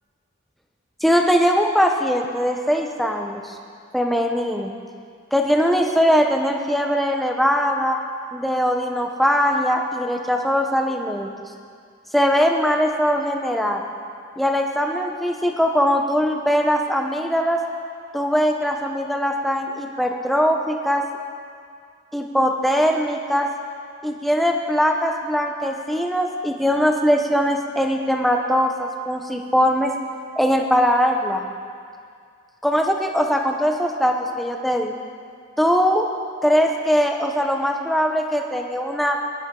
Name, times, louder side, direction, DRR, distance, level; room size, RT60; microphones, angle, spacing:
voice 1, 1.0-3.6 3.9-4.7 5.3-8.0 8.3-11.3 12.1-13.8 14.4-17.6 18.1-21.0 22.1-23.5 24.0-29.9 30.4-31.5 32.6-34.9 35.6-36.1 36.4-39.2, equal, ahead, 2 dB, 0.8 m, -21 dB
19.0 x 11.5 x 3.9 m, 2.2 s
head